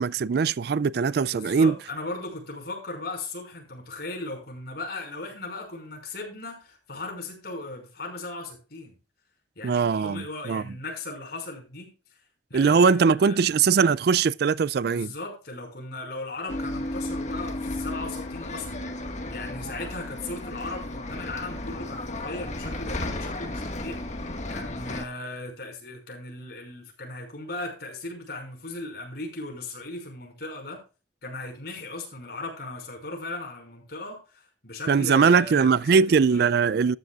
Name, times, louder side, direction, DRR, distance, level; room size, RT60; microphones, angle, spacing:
voice 1, 0.0-1.7 9.6-10.6 12.5-15.1 34.9-37.0, right 5 dB, 60° right, 0.4 m, -21 dB
voice 2, 1.3-9.0 9.6-12.2 12.5-13.4 14.8-18.9 19.3-30.8 31.2-36.4, left 2 dB, 60° left, 5.7 m, -37 dB
Bus, 16.5-25.1, left 1 dB, 40° left, 1.7 m, -34 dB
13.5 x 10.5 x 2.4 m
head